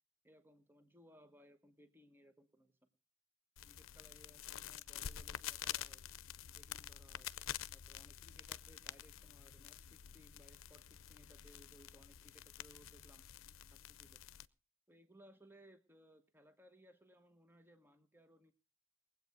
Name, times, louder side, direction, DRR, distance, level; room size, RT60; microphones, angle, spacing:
voice 1, 0.2-2.8 3.6-6.0 6.5-7.3 7.7-13.2 13.7-14.2 14.9-18.5, equal, 10° right, 9 dB, 1.0 m, -64 dB
sound 1, 3.6-14.5, left 10 dB, 85° left, 0.6 m, -48 dB
20.5 x 8.2 x 5.3 m, 0.34 s
head